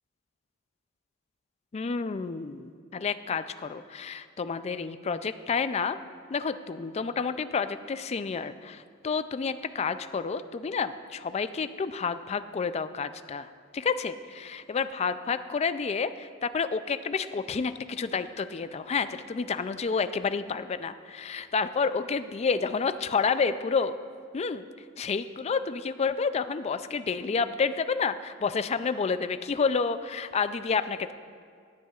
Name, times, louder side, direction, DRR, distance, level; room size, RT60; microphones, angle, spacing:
voice 1, 1.7-6.0 6.3-24.0 24.3-24.7 25.0-31.1, left 5 dB, 30° left, 12 dB, 0.3 m, -30 dB
17.5 x 10.0 x 2.4 m, 2.1 s
head